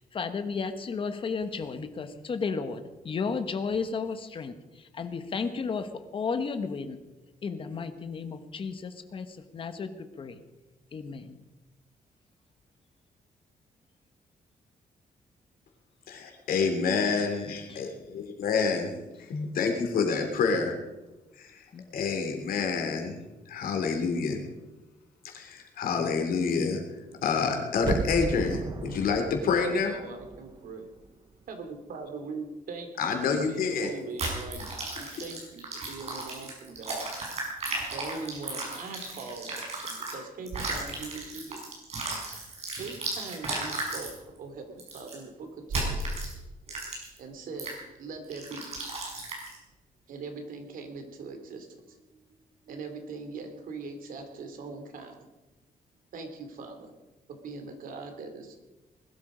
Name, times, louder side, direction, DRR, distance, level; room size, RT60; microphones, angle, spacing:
voice 1, 0.0-7.0 7.4-10.4 10.9-11.4 16.9-17.8 21.7-21.8, left 5 dB, 35° left, 9 dB, 1.3 m, -34 dB
voice 2, 16.1-18.9 19.2-20.8 21.4-21.7 21.9-24.4 25.2-26.8 27.2-30.0 33.0-33.9, left 5 dB, 85° left, 3 dB, 3.3 m, -28 dB
sound 1, 27.8-30.7 31.0-31.1, right 4 dB, 30° right, 0.7 m, -34 dB
voice 3, 29.7-30.9 31.5-37.1 37.9-41.6 42.8-46.3 47.2-47.7 48.0-48.7 50.1-52.4 52.7-55.2 56.1-56.9 57.3-58.5, right 4 dB, 75° right, 6 dB, 2.9 m, -41 dB
sound 2, 34.2-40.1 40.5-44.1 44.8-45.2 45.7-46.3 46.7-47.2 47.6-47.8 48.3-49.6, right 2 dB, 45° right, 5.5 m, -35 dB
20.5 x 12.5 x 5.1 m, 1.1 s
wide cardioid pair, 170°, 15 cm